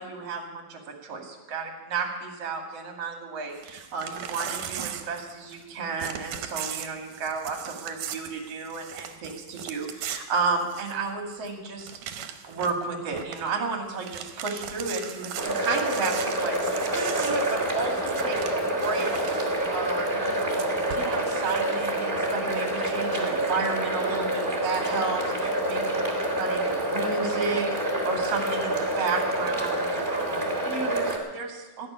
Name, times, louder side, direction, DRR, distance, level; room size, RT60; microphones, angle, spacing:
voice 1, 0.0-11.9 12.4-26.0 26.4-31.9, right 4 dB, 50° right, 3 dB, 2.9 m, -32 dB
Crumpling crinkling / Tearing, 3.5-5.7 6.0-11.1 11.5-11.6 11.8-12.8 13.1-13.5 13.9-19.6 20.4-22.0, right 9 dB, 75° right, 2.5 m, -38 dB
sound 1, 15.4-31.2, right 1 dB, 20° right, 1.8 m, -27 dB
17.5 x 6.9 x 9.6 m, 1.2 s
omnidirectional pair, 4.0 m